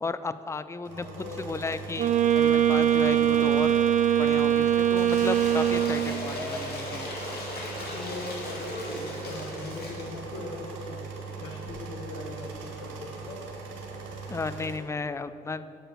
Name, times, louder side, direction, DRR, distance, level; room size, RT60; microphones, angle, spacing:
voice 1, 0.0-1.1 1.4-3.8 4.2-7.1 14.3-15.8, left 3 dB, 15° left, 13 dB, 0.4 m, -34 dB
sound 1, 0.8-14.8, right 4 dB, 80° right, 1.1 m, -40 dB
voice 2, 0.9-1.5 6.1-6.6 7.8-11.0 11.4-13.5, left 3 dB, 85° left, 2 dB, 1.1 m, -40 dB
Wind instrument woodwind instrument, 2.0-6.3, right 10 dB, 40° right, 0.6 m, -22 dB
Cheering / Applause / Crowd, 4.9-10.2, left 1 dB, 55° left, 2.0 m, -37 dB
7.3 x 5.0 x 6.6 m, 2.5 s
hypercardioid pair, 50°, 20 cm